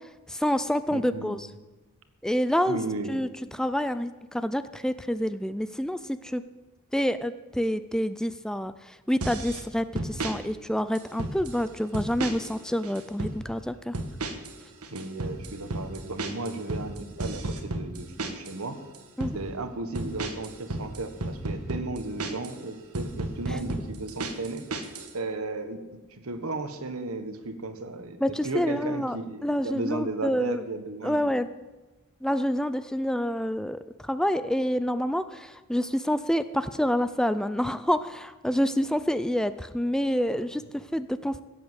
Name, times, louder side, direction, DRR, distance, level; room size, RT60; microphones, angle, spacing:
voice 1, 0.3-1.5 2.2-2.8 3.1-3.3 3.6-6.4 6.9-13.9 19.2-19.4 23.5-23.6 28.2-29.2 29.4-30.6 31.0-31.5 32.2-41.4, equal, 5° left, 12 dB, 0.4 m, -27 dB
voice 2, 0.9-1.5 2.7-3.2 14.9-18.8 19.3-31.3, right 2 dB, 70° right, 9 dB, 1.5 m, -35 dB
sound 1, 9.2-9.6 10.0-10.4 11.0-11.6 11.9-12.6 12.8-13.4 13.9-14.6 14.8-18.6 18.9-19.4 20.0-22.6 22.9-25.1, right 2 dB, 85° right, 1.6 m, -33 dB
16.0 x 8.2 x 8.0 m, 1.2 s
head